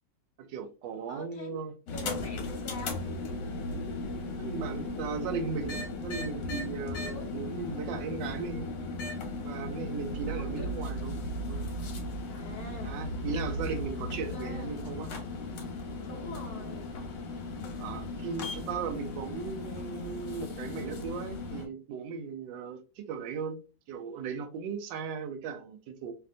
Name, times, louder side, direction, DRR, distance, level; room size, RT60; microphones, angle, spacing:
voice 1, 0.4-1.7 2.0-2.1 4.4-8.7 9.4-11.2 11.5-11.6 12.8-15.1 17.8-23.6 23.9-26.1, right 5 dB, 85° right, 1.3 m, -37 dB
voice 2, 1.1-3.0 7.0-7.3 10.3-10.7 12.3-13.0 14.1-14.8 16.0-16.9, left 2 dB, 50° left, 0.6 m, -44 dB
sound 1, 1.9-21.7, left 2 dB, 80° left, 1.5 m, -36 dB
3.3 x 2.4 x 2.6 m
omnidirectional pair, 1.9 m